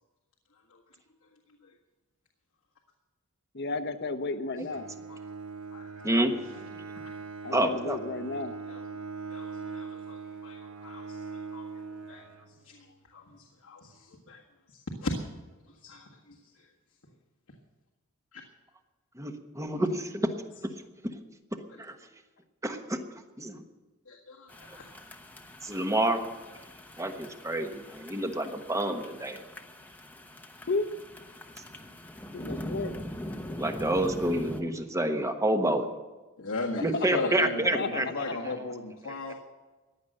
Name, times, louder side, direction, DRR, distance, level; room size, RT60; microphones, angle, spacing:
voice 1, 3.5-4.9 7.4-8.6 30.7-30.9 32.3-33.0 36.9-37.3 37.7-38.3, left 3 dB, 50° left, 8 dB, 1.0 m, -33 dB
Bowed string instrument, 4.7-12.9, right 4 dB, 90° right, 1.1 m, -41 dB
voice 2, 7.5-8.0 19.2-20.3 21.8-22.0 22.6-23.0 23.4-23.6 24.7-24.8 25.6-26.2 27.0-29.4 33.6-35.9 36.8-38.1 39.0-39.1, right 1 dB, 15° right, 6 dB, 1.2 m, -28 dB
voice 3, 9.3-11.7 12.1-12.2 12.6-14.4 14.7-15.1 15.8-16.5 18.3-18.4 24.1-24.9 36.4-39.3, left 2 dB, 90° left, -2 dB, 1.8 m, -38 dB
sound 1, 24.5-34.6, left 1 dB, 10° left, 1.0 m, -42 dB
15.5 x 10.5 x 6.6 m, 1.2 s
head